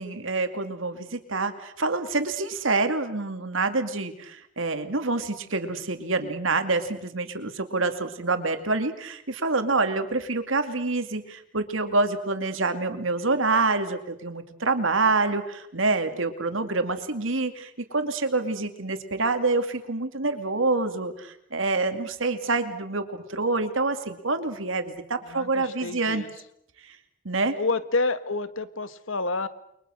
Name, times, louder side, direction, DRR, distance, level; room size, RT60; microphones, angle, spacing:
voice 1, 0.0-26.2 27.2-27.5, right 3 dB, 75° right, 8 dB, 2.6 m, -27 dB
voice 2, 25.2-26.3 27.5-29.5, left 3 dB, 80° left, 13 dB, 1.5 m, -29 dB
29.5 x 23.0 x 6.5 m, 0.77 s
head